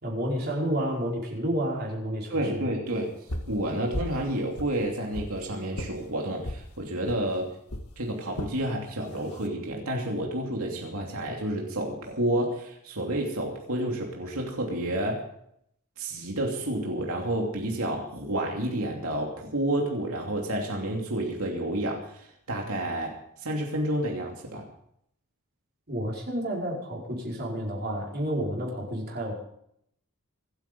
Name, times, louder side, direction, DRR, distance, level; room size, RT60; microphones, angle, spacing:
voice 1, 0.0-2.7 25.9-29.3, equal, 45° right, -2 dB, 5.1 m, -30 dB
voice 2, 2.3-3.1 3.5-7.5 8.0-15.3 16.0-24.7, right 1 dB, 70° right, 0 dB, 2.8 m, -30 dB
sound 1, 3.3-3.6 3.9-4.2 4.5-5.3 5.7-5.9 6.4-6.6 7.1-7.2 7.7-7.9 8.4-8.6 9.1-9.5, left 1 dB, 85° left, 2.0 m, -34 dB
25.5 x 9.0 x 5.4 m, 0.71 s
head